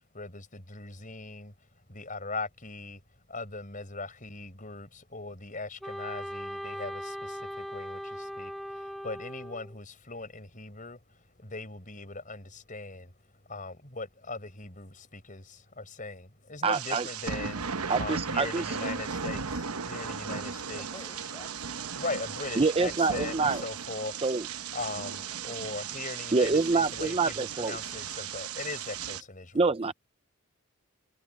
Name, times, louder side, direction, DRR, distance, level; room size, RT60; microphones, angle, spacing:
voice 1, 0.1-1.5 1.9-3.0 3.3-7.1 7.6-8.0 8.4-8.5 9.0-11.0 11.4-13.1 13.5-15.4 15.8-17.6 18.0-19.4 19.9-20.9 22.0-24.1 24.7-29.7, left 3 dB, 35° left, 6.1 m, -39 dB
Wind instrument woodwind instrument, 5.8-9.8, equal, ahead, 1.1 m, -39 dB
voice 2, 16.6-17.1 17.9-18.8 22.6-23.6 24.2-24.5 26.3-27.8 29.5-29.9, right 4 dB, 25° right, 0.5 m, -26 dB
sound 1, 16.7-29.2, right 6 dB, 85° right, 1.0 m, -36 dB
voice 3, 20.8-22.8, left 2 dB, 15° left, 6.9 m, -52 dB
head